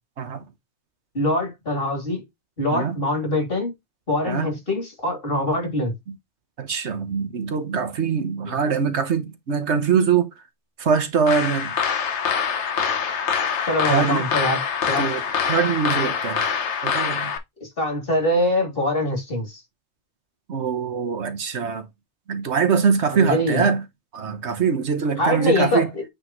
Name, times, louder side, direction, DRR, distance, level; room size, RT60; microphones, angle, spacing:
voice 1, 1.1-2.2 2.6-3.7 4.1-5.9 8.4-8.6 13.6-14.6 14.9-15.1 17.6-19.6 23.1-23.7 25.2-26.0, left 1 dB, 55° left, 3.3 m, -23 dB
voice 2, 6.6-10.3 10.8-11.7 13.9-14.3 15.0-16.4 16.8-17.3 20.5-21.9 22.3-23.8 24.1-25.9, right 6 dB, 75° right, 1.4 m, -23 dB
sound 1, 11.3-17.4, left 6 dB, 85° left, 1.2 m, -24 dB
8.7 x 3.7 x 3.0 m
omnidirectional pair, 1.2 m